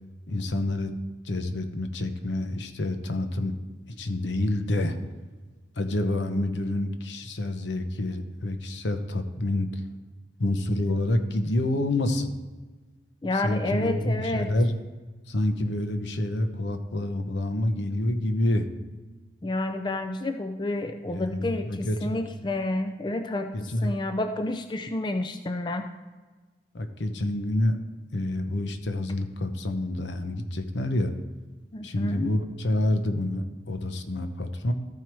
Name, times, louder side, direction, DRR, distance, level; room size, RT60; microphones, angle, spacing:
voice 1, 0.3-0.9 1.2-3.6 3.9-5.0 5.8-9.8 10.4-12.4 13.3-14.7 15.3-18.7 21.1-22.2 23.5-23.9 26.7-27.8 28.1-31.1 31.8-34.7, left 1 dB, 80° left, 8 dB, 0.8 m, -28 dB
voice 2, 13.2-14.5 19.4-25.9 31.7-32.3, left 2 dB, 25° left, 6 dB, 0.4 m, -30 dB
13.5 x 4.6 x 4.7 m, 1.3 s
head